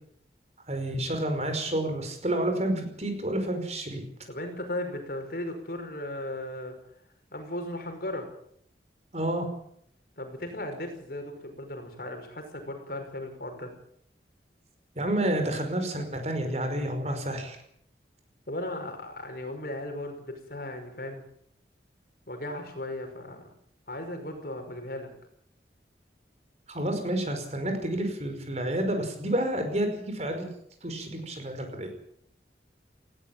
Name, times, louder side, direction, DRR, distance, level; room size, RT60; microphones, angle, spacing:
voice 1, 0.7-4.0 9.1-9.5 15.0-17.6 26.7-30.4 30.8-31.9, right 1 dB, 40° right, 6 dB, 5.4 m, -29 dB
voice 2, 4.3-6.7 7.3-8.3 10.2-13.7 18.5-21.2 22.3-23.5 23.9-25.1, left 1 dB, 55° left, 5 dB, 5.8 m, -36 dB
19.5 x 16.5 x 9.0 m, 0.67 s
head